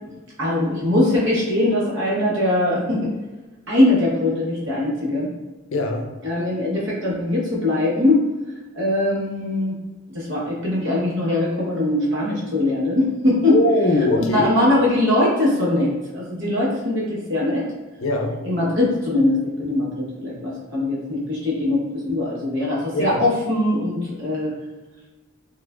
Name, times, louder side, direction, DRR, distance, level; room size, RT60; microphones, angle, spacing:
voice 1, 0.4-3.1 3.7-5.3 6.2-8.2 8.7-9.8 10.1-13.6 14.1-17.7 18.4-24.5, left 1 dB, 70° right, -6 dB, 1.1 m, -21 dB
voice 2, 5.7-6.1 13.5-14.5 18.0-18.4 22.9-23.2, left 1 dB, 80° left, 3 dB, 0.5 m, -21 dB
4.3 x 2.5 x 2.3 m, 1.2 s
head